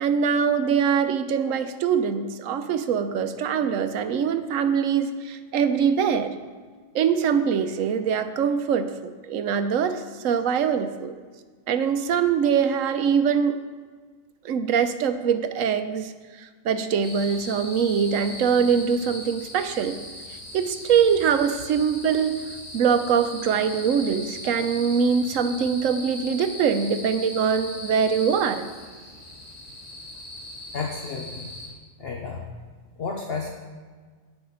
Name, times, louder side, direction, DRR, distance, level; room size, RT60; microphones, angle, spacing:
voice 1, 0.0-6.4 6.9-11.1 11.7-13.6 14.4-16.1 16.4-20.1 20.5-22.4 22.7-28.7, right 7 dB, 80° right, 9 dB, 1.1 m, -23 dB
sound 1, 17.0-31.7, left 1 dB, 75° left, 2.8 m, -39 dB
voice 2, 30.7-31.5 32.0-32.4 33.0-33.5, left 4 dB, 50° left, 0 dB, 1.1 m, -31 dB
17.5 x 5.9 x 4.0 m, 1.5 s
omnidirectional pair, 1.4 m